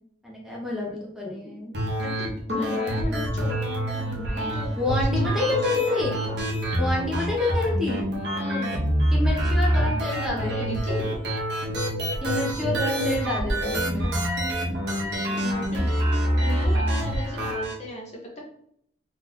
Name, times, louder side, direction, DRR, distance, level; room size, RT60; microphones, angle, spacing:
voice 1, 0.2-1.7 2.5-2.8 3.1-3.3 4.8-6.1 6.8-8.0 9.1-10.8 12.2-14.0, left 2 dB, ahead, -3 dB, 0.8 m, -28 dB
sound 1, 1.7-17.7, equal, 60° right, 0.9 m, -26 dB
voice 2, 2.0-6.4 8.3-8.9 10.4-11.3 14.0-14.1 15.3-15.9 16.4-18.4, left 1 dB, 35° left, -1 dB, 0.6 m, -37 dB
3.0 x 2.4 x 3.9 m, 0.69 s
head